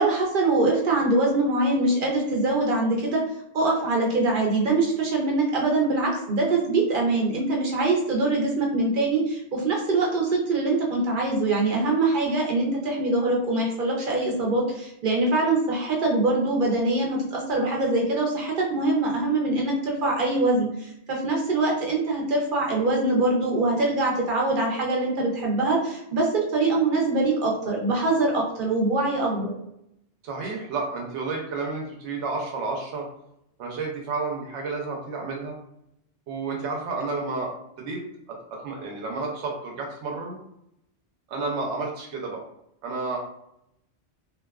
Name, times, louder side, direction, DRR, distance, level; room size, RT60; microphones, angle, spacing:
voice 1, 0.0-3.2 3.5-29.5, right 2 dB, 55° right, -1 dB, 0.7 m, -23 dB
voice 2, 30.2-33.1 33.6-35.6 36.3-38.0 38.3-40.4 41.3-42.4 42.8-43.2, right 3 dB, 80° right, 0 dB, 0.9 m, -31 dB
2.5 x 2.2 x 2.3 m, 0.78 s
omnidirectional pair, 1.2 m